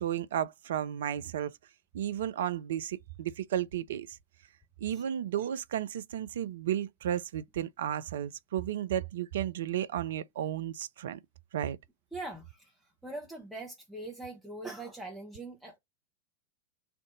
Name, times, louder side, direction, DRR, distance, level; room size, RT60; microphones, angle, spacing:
voice 1, 0.0-1.5 1.9-4.2 4.8-11.2 11.5-11.8, right 10 dB, 60° right, 0.3 m, -33 dB
voice 2, 12.1-15.8, right 2 dB, ahead, 0.9 m, -42 dB
3.5 x 2.5 x 3.7 m
figure-of-eight pair, 90°, 0 cm